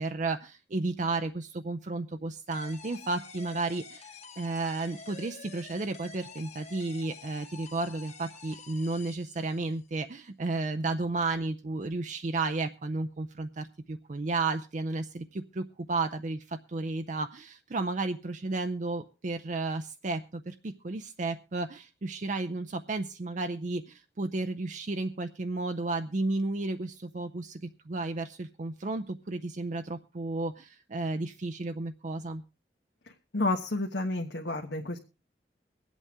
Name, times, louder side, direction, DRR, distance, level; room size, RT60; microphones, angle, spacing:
voice 1, 0.0-32.4, right 3 dB, 45° right, 8 dB, 0.5 m, -33 dB
sound 1, 2.5-9.9, left 4 dB, 40° left, 1.5 m, -48 dB
voice 2, 33.0-35.0, left 2 dB, 80° left, 2 dB, 1.2 m, -31 dB
23.5 x 8.3 x 3.5 m, 0.32 s
head